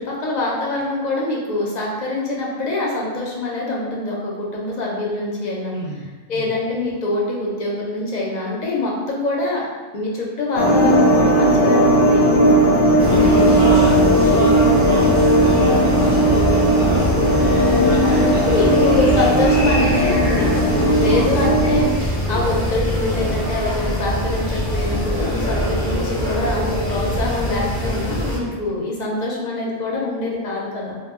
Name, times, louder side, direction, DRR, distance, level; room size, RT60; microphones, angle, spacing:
voice 1, 0.0-5.7 6.3-9.6 9.9-12.3 17.3-31.0, left 2 dB, 55° left, -3 dB, 0.5 m, -24 dB
voice 2, 5.7-6.0 6.3-6.5 13.1-18.8 20.8-21.3, right 3 dB, 65° right, -6 dB, 0.7 m, -29 dB
sound 1, 10.6-21.8, right 1 dB, 85° left, 0.9 m, -16 dB
sound 2, 13.0-28.4, equal, 35° right, 0.6 m, -23 dB
2.1 x 2.0 x 3.5 m, 1.4 s
omnidirectional pair, 1.2 m